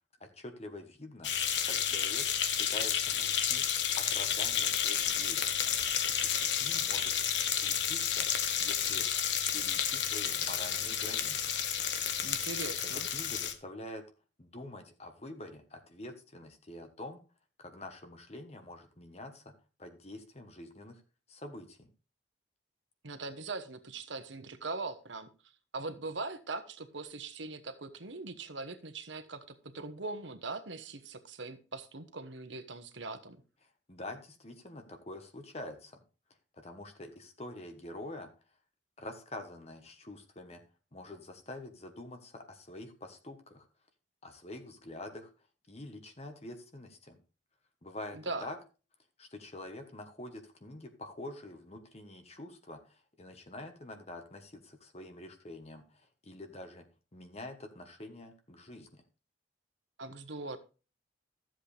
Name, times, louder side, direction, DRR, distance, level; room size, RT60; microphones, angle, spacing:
voice 1, 0.2-1.3 1.6-2.3 2.6-3.7 4.0-5.7 6.2-7.2 7.5-8.3 8.6-9.1 9.5-11.5 13.1-14.0 14.4-17.2 17.6-19.5 19.8-21.0 21.3-21.9 33.9-36.0 36.5-38.3 39.0-40.6 40.9-43.7 44.2-45.3 45.7-47.2 47.8-48.6 49.2-56.8 57.1-59.0, left 1 dB, 35° left, 6 dB, 1.2 m, -46 dB
sound 1, 1.2-13.5, left 9 dB, 70° left, 1.2 m, -31 dB
voice 2, 12.2-13.1 23.0-25.3 25.7-33.4 48.1-48.5 60.0-60.6, right 3 dB, 80° right, 10 dB, 1.2 m, -41 dB
14.0 x 7.7 x 3.4 m, 0.34 s
head